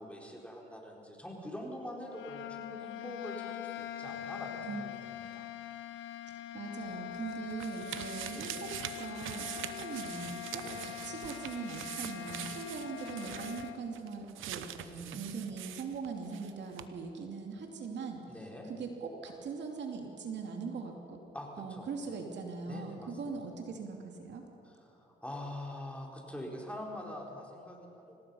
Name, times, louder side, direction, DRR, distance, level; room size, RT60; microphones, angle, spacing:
voice 1, 0.0-5.5 8.3-8.7 10.6-10.8 14.8-15.2 18.3-18.7 21.3-22.1 22.7-23.4 24.6-28.2, left 1 dB, 5° left, -1 dB, 4.3 m, -44 dB
sound 1, 2.0-13.8, left 12 dB, 75° left, 0.9 m, -43 dB
voice 2, 6.3-8.7 9.0-14.7 15.1-18.2 18.7-21.2 21.6-24.4, right 5 dB, 65° right, 2 dB, 2.7 m, -41 dB
sound 2, 6.9-16.5 16.8-16.9, right 11 dB, 85° right, 1.0 m, -44 dB
25.5 x 18.0 x 5.6 m, 2.7 s
cardioid pair, 90°, 20 cm